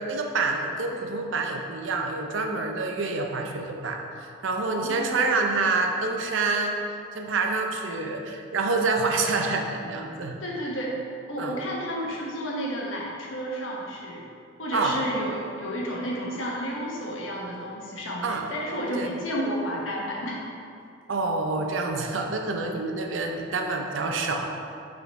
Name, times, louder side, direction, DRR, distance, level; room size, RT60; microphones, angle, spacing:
voice 1, 0.0-6.8 7.1-10.4 11.4-11.5 14.7-15.0 18.2-18.5 18.9-19.1 21.1-24.5, right 3 dB, 75° right, 3 dB, 0.6 m, -27 dB
voice 2, 4.6-5.2 10.4-10.9 11.3-14.2 14.6-20.4, equal, 90° left, -3 dB, 1.2 m, -31 dB
5.7 x 3.8 x 4.6 m, 2.4 s
head